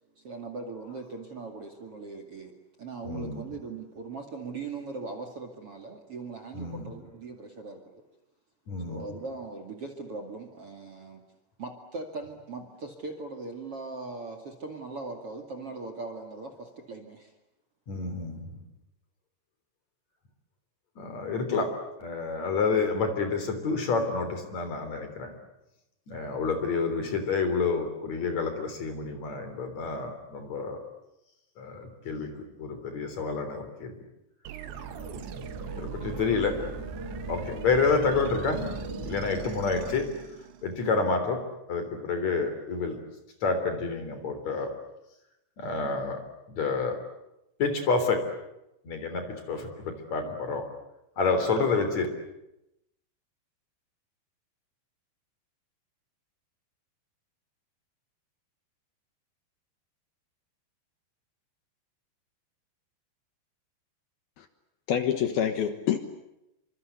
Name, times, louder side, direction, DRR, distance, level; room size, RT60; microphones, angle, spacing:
voice 1, 0.2-7.9 8.8-11.2 11.6-17.3, right 3 dB, 40° right, 3 dB, 2.6 m, -40 dB
voice 2, 3.0-3.4 6.6-6.9 8.7-9.1 17.9-18.6 21.0-21.7 22.0-25.3 26.1-30.8 31.6-32.3 32.6-33.9 35.6-36.6 37.3-38.6 39.1-40.1 40.6-41.4 41.7-43.0 43.4-44.7 45.6-46.2 46.5-47.0 47.6-48.2 48.8-50.7 51.2-52.1, left 4 dB, 40° left, 7 dB, 4.4 m, -29 dB
sound 1, 34.5-40.9, right 11 dB, 90° right, 3.8 m, -41 dB
sound 2, 34.7-39.7, equal, 5° right, 4.3 m, -40 dB
voice 3, 64.9-66.0, left 9 dB, 70° left, 8 dB, 3.0 m, -26 dB
28.0 x 25.5 x 8.2 m, 0.88 s
omnidirectional pair, 5.0 m